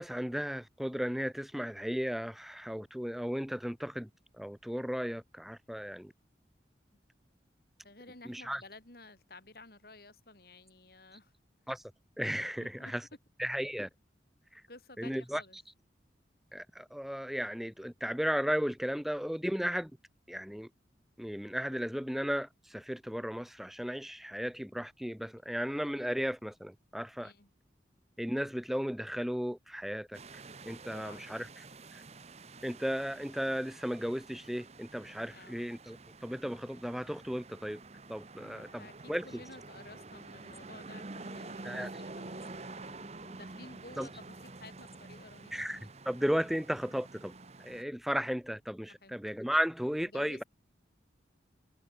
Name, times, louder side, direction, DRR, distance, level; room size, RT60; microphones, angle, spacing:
voice 1, 0.0-4.1 4.4-6.1 8.3-8.6 11.7-11.9 12.2-13.1 13.4-13.9 14.5-14.6 15.0-15.6 16.5-19.9 20.3-20.7 21.2-27.3 28.2-30.2 30.6-31.6 31.9-32.0 32.6-37.8 38.1-39.3 41.6-41.9 44.0-44.1 45.5-45.8 46.1-47.3 47.6-50.4, equal, ahead, 0.4 m, -35 dB
voice 2, 7.8-11.3 12.6-12.9 14.7-15.6 25.5-25.6 27.2-27.5 30.9-31.2 35.3-35.6 38.4-45.5 49.0-49.1 50.1-50.4, left 2 dB, 55° left, 4.7 m, -53 dB
sound 1, 30.1-47.8, right 3 dB, 35° right, 1.0 m, -48 dB
head